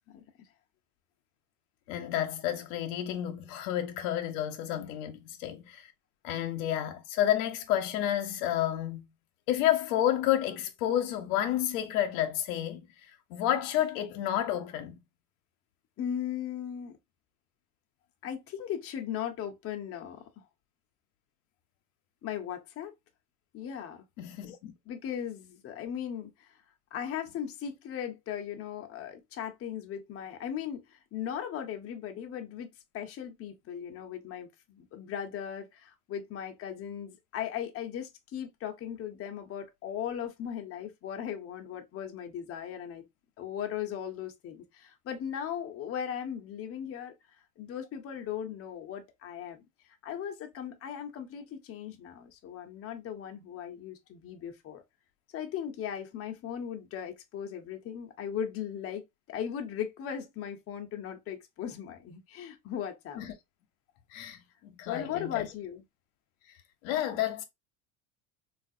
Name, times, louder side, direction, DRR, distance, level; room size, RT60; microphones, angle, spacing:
voice 1, 0.1-0.5 4.8-5.0 16.0-16.9 18.2-20.2 22.2-22.9 23.5-24.0 24.9-26.6 26.9-43.0 43.4-47.1 47.6-49.6 50.0-54.8 55.3-63.2 64.9-65.8, left 9 dB, 35° left, 0.6 m, -38 dB
voice 2, 1.9-5.9 6.2-9.0 9.5-12.9 13.3-15.0 24.2-24.7 63.2-63.3 64.1-65.5 66.8-67.4, left 12 dB, 80° left, 0.7 m, -30 dB
3.3 x 2.4 x 2.5 m
supercardioid pair, 115°, 41 cm